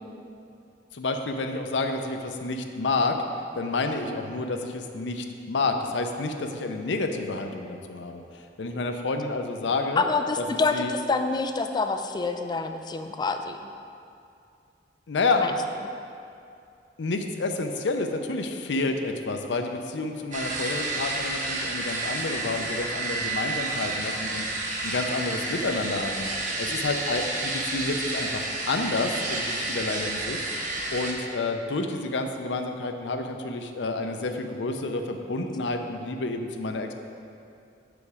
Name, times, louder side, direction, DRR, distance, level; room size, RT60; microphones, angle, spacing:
voice 1, 0.9-3.2 3.6-8.2 8.6-10.0 10.4-10.5 10.7-10.9 15.1-15.5 17.0-26.3 26.6-30.4 30.9-37.0, left 3 dB, 70° left, 5 dB, 0.5 m, -29 dB
voice 2, 10.0-13.6 15.4-15.5, left 4 dB, 25° left, 7 dB, 0.3 m, -27 dB
sound 1, 20.3-31.1, right 2 dB, 45° right, 0.9 m, -30 dB
6.9 x 5.1 x 4.8 m, 2.5 s
head